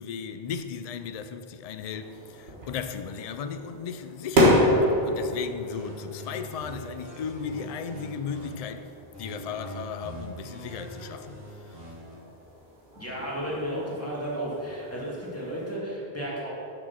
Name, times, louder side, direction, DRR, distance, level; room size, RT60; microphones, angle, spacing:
voice 1, 0.0-4.6 5.0-8.9 9.2-11.8, left 7 dB, 55° left, 0.4 m, -36 dB
sound 1, 1.9-15.7, equal, 85° right, 1.8 m, -30 dB
sound 2, 5.7-8.7 9.1-12.1, right 1 dB, 65° right, 2.2 m, -43 dB
voice 2, 13.0-16.5, equal, 15° left, 2.0 m, -33 dB
6.8 x 6.2 x 5.9 m
omnidirectional pair, 1.0 m